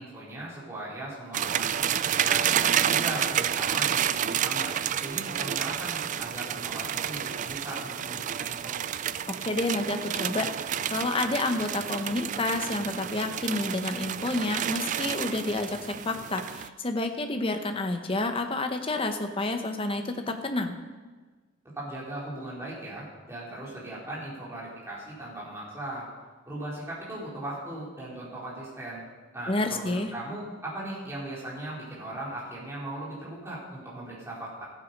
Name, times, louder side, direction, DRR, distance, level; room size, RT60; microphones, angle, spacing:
voice 1, 0.0-1.8 2.2-4.7 5.0-8.8 21.8-26.1 26.5-29.0 29.3-34.6, right 1 dB, 15° right, -7 dB, 3.9 m, -38 dB
sound 1, 1.3-16.7, right 9 dB, 40° right, 0.3 m, -30 dB
voice 2, 9.4-10.6 10.9-20.7 29.5-30.1, left 2 dB, 25° left, 6 dB, 0.9 m, -29 dB
14.0 x 8.5 x 5.4 m, 1.4 s
head